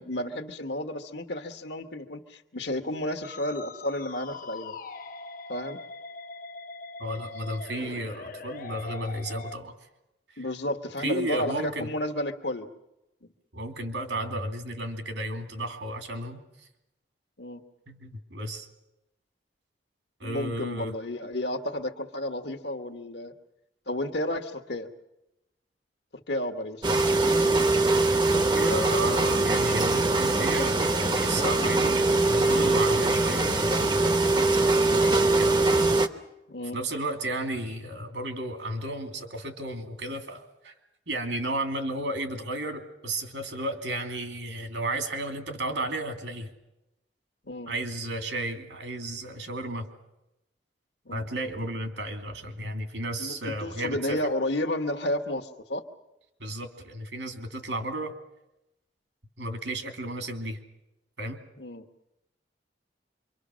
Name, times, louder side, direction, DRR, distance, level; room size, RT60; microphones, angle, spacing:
voice 1, 0.0-4.7 5.5-5.8 10.4-12.7 17.4-17.6 20.2-23.3 23.9-24.9 26.1-26.8 36.5-36.8 47.5-47.7 51.0-51.3 53.2-55.9 61.6-61.8, left 1 dB, 65° left, 6 dB, 1.4 m, -32 dB
Musical instrument, 3.2-9.6, left 3 dB, 45° left, 0.9 m, -42 dB
voice 2, 7.0-9.8 10.3-10.5 11.0-11.9 13.5-16.4 17.9-18.7 20.2-21.0 28.3-30.8 31.1-33.5 34.0-35.6 36.7-40.8 41.1-46.5 47.7-49.9 51.1-54.3 56.4-58.1 59.4-60.6 61.2-61.4, right 1 dB, 75° right, 5 dB, 2.6 m, -33 dB
sound 1, 26.8-36.1, right 2 dB, 25° right, 0.8 m, -22 dB
26.5 x 24.0 x 6.3 m, 0.93 s
head